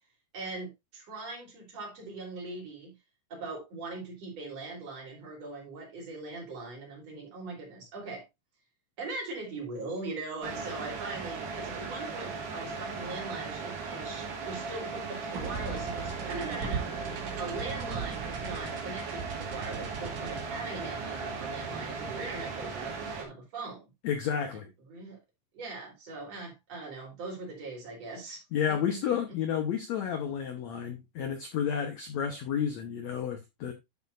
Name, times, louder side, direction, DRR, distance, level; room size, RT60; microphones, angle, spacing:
voice 1, 0.3-2.9 3.3-8.2 9.0-16.9 17.4-23.8 24.9-25.2 25.5-28.8, right 3 dB, 40° right, 4.4 m, -40 dB
sound 1, 10.4-23.3, right 4 dB, 75° right, 4.1 m, -38 dB
sound 2, 15.3-22.7, right 6 dB, 60° right, 3.1 m, -40 dB
voice 2, 24.0-24.7 28.5-33.7, left 8 dB, 85° left, 1.5 m, -31 dB
11.5 x 7.1 x 2.6 m
omnidirectional pair, 4.7 m